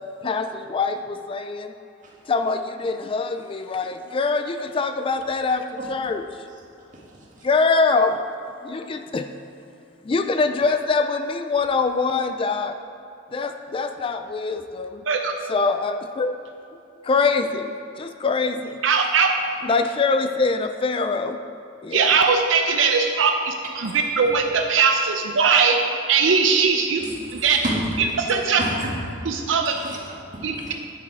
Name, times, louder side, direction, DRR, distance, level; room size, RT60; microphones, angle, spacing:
voice 1, 0.2-1.7 2.3-6.2 7.4-8.2 8.6-9.3 10.1-12.8 13.3-15.0 15.5-16.3 17.0-18.8 19.6-21.4 21.8-22.1, left 4 dB, 25° left, 8 dB, 0.3 m, -24 dB
voice 2, 6.9-7.5 23.8-23.9 27.0-27.9 28.6-29.0 29.6-30.7, right 1 dB, 40° right, -4 dB, 1.9 m, -32 dB
voice 3, 18.8-19.3 21.9-27.0 27.3-27.6 28.2-28.6 29.3-29.8 30.4-30.7, right 5 dB, 75° right, 4 dB, 0.6 m, -20 dB
10.0 x 7.2 x 4.7 m, 2.7 s
head